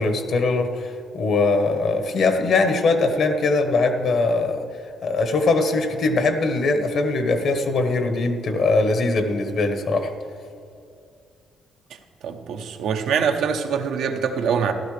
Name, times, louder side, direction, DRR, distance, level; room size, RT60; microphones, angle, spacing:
voice 1, 0.0-4.6 5.0-10.1, left 3 dB, 65° left, 6 dB, 1.2 m, -21 dB
voice 2, 12.2-14.7, right 6 dB, 80° right, 5 dB, 0.9 m, -24 dB
14.5 x 12.0 x 3.3 m, 2.3 s
cardioid pair, 90°, 0 cm